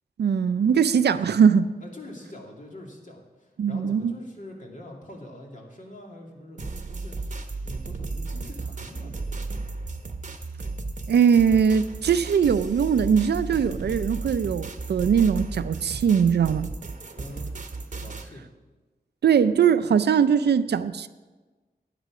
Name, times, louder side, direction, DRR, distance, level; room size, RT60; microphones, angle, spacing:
voice 1, 0.2-1.7 3.6-4.1 11.1-16.7 19.2-21.1, right 7 dB, 90° right, 0.5 m, -21 dB
voice 2, 1.8-7.2 7.6-9.5 17.2-17.5 18.0-18.4, left 1 dB, 50° left, 2.4 m, -44 dB
sound 1, 6.6-18.3, right 3 dB, 45° right, 0.9 m, -34 dB
12.5 x 9.3 x 4.9 m
wide cardioid pair, 75°, 17 cm